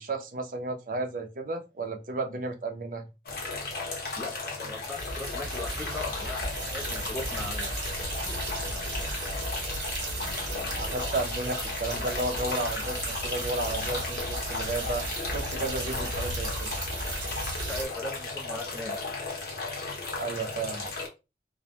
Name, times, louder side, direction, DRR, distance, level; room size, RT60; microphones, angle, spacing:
voice 1, 0.0-3.0 10.7-16.7 20.1-20.9, right 2 dB, 50° right, 5 dB, 0.5 m, -33 dB
sound 1, 3.3-21.1, left 3 dB, 55° left, 0.8 m, -35 dB
voice 2, 4.2-7.7 17.7-19.1, left 2 dB, ahead, -1 dB, 0.6 m, -39 dB
sound 2, 5.0-17.9, right 2 dB, 70° right, 0.9 m, -35 dB
2.2 x 2.0 x 2.8 m, 0.26 s
head